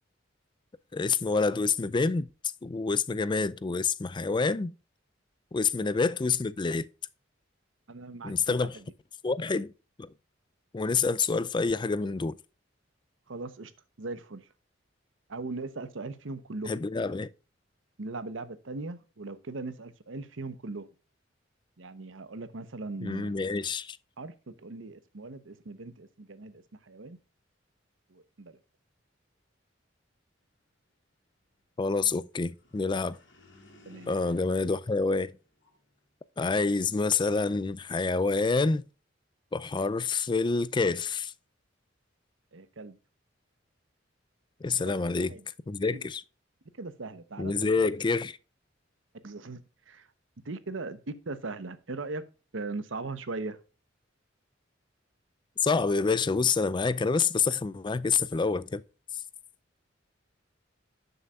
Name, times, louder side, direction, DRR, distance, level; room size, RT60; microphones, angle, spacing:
voice 1, 0.9-2.3 2.6-4.7 5.5-6.9 8.2-8.8 9.2-9.7 10.0-10.1 10.7-12.4 16.7-17.3 23.0-24.0 31.8-33.2 34.1-35.3 36.4-38.8 39.5-41.3 44.6-45.3 45.7-46.2 47.4-48.4 55.6-58.8, left 4 dB, 25° left, 0.4 m, -27 dB
voice 2, 7.9-8.8 13.3-13.7 14.0-14.5 15.3-16.7 18.0-20.9 21.8-23.4 24.2-27.2 28.1-28.6 33.9-34.1 42.5-43.0 44.8-45.4 45.9-46.0 46.8-47.9 49.2-50.1 50.4-52.2 52.5-53.6, right 3 dB, 85° right, 0.9 m, -39 dB
sound 1, 32.4-36.0, left 2 dB, 75° left, 2.8 m, -57 dB
11.0 x 6.7 x 2.4 m
head